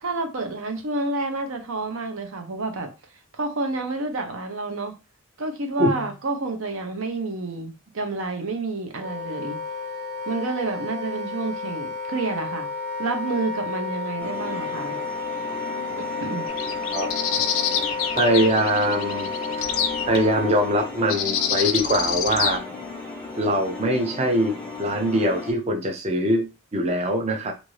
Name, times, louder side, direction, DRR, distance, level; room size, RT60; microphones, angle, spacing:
voice 1, 0.0-2.9 3.3-4.9 5.4-9.6 10.3-12.7 13.0-15.0 16.2-16.5, right 3 dB, 75° right, 0.7 m, -29 dB
Wind instrument woodwind instrument, 8.9-20.9, left 3 dB, 50° right, 1.0 m, -32 dB
sound 1, 14.2-25.5, left 3 dB, 5° left, 0.7 m, -36 dB
sound 2, 16.5-20.2 21.1-22.6, left 8 dB, 80° left, 0.4 m, -26 dB
voice 2, 18.1-19.3 20.1-22.6 23.4-27.5, right 1 dB, 30° right, 0.4 m, -22 dB
2.6 x 2.5 x 3.1 m
head